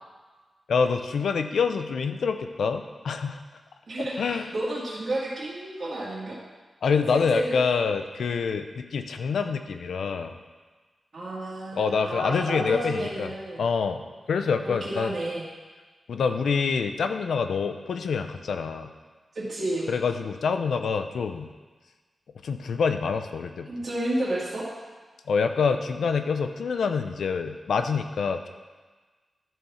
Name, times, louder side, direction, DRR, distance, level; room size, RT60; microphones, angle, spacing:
voice 1, 0.7-3.4 4.0-4.5 6.8-10.3 11.7-13.3 13.6-15.1 16.1-18.9 19.9-21.5 22.4-23.7 25.3-28.5, left 5 dB, 90° left, 8 dB, 0.6 m, -26 dB
voice 2, 3.9-6.4 7.1-7.6 11.1-13.6 14.6-15.4 19.3-19.9 23.7-24.7, right 1 dB, 50° right, -9 dB, 2.2 m, -31 dB
12.5 x 4.6 x 5.7 m, 1.3 s
wide cardioid pair, 120°, 0 cm